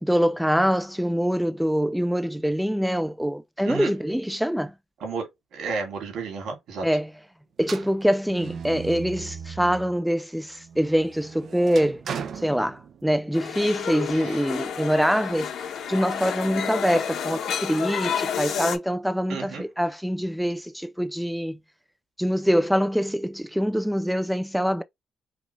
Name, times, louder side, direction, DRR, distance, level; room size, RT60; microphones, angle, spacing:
voice 1, 0.0-4.7 6.8-7.1 7.6-12.0 12.4-15.5 15.9-21.6 22.2-24.8, equal, ahead, 0.4 m, -24 dB
voice 2, 5.0-6.9 14.1-14.5 19.3-19.6, right 4 dB, 75° right, 2.6 m, -32 dB
sound 1, 7.6-10.0 10.5-13.3, right 7 dB, 60° right, 0.7 m, -37 dB
sound 2, 13.3-18.8, left 8 dB, 70° left, 1.5 m, -30 dB
5.0 x 2.4 x 3.3 m
cardioid pair, 90°, 0 cm